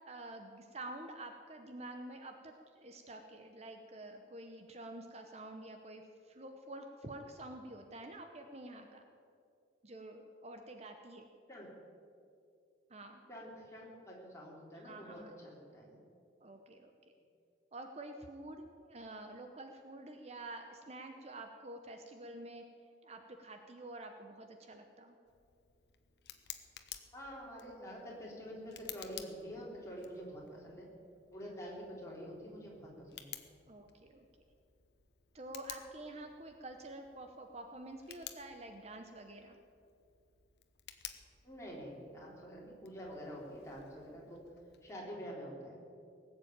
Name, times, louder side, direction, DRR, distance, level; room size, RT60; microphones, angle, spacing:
voice 1, 0.1-9.0 9.8-11.3 12.9-13.2 14.7-15.3 16.4-16.9 17.7-22.6 23.0-25.2 33.7-34.2 35.3-39.6, right 2 dB, 35° right, 5 dB, 0.9 m, -48 dB
voice 2, 13.3-16.0 27.1-30.9 31.3-33.4 41.4-44.4 44.8-45.8, equal, 15° left, -4 dB, 3.7 m, -47 dB
Tick, 25.3-44.9, left 11 dB, 65° left, 1.0 m, -54 dB
18.5 x 7.6 x 8.8 m, 2.4 s
head